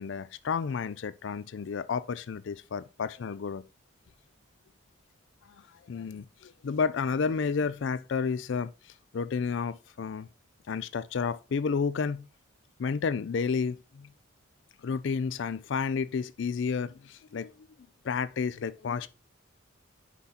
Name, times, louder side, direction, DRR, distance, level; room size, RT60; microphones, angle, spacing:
voice 1, 0.0-3.6 5.5-8.7 9.1-10.3 10.7-12.3 12.8-14.1 14.8-17.5 18.0-19.1, left 5 dB, 60° left, 0.4 m, -31 dB
6.0 x 5.7 x 4.1 m
head